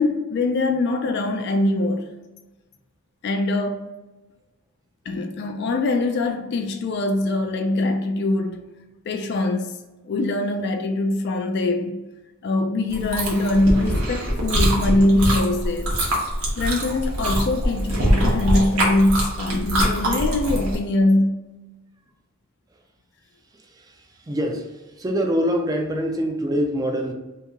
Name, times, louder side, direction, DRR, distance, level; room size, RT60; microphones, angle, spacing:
voice 1, 0.0-2.1 3.2-3.9 5.1-8.6 9.1-9.8 10.0-12.0 12.4-16.0 16.6-21.4, left 2 dB, 55° left, 0.3 m, -22 dB
Chewing mastication, 12.9-20.7, equal, 85° right, 1.0 m, -23 dB
voice 2, 23.6-27.1, equal, 20° right, 0.4 m, -25 dB
2.8 x 2.7 x 3.5 m
head